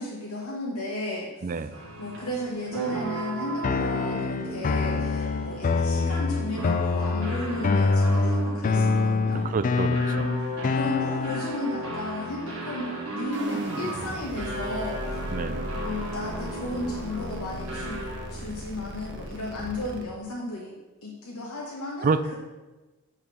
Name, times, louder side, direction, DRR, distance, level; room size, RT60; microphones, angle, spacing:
voice 1, 0.0-9.4 10.7-15.2 15.8-22.3, left 1 dB, 80° left, -3 dB, 1.1 m, -34 dB
voice 2, 1.4-1.7 9.5-10.3 15.3-15.7 22.0-22.3, right 4 dB, 40° right, 12 dB, 0.4 m, -28 dB
sound 1, 1.7-18.4, right 2 dB, 75° right, 1.6 m, -35 dB
sound 2, 3.6-11.6, left 4 dB, 40° left, 0.3 m, -25 dB
sound 3, 13.3-20.0, right 1 dB, 55° right, 1.0 m, -37 dB
8.8 x 3.6 x 6.0 m, 1.2 s
head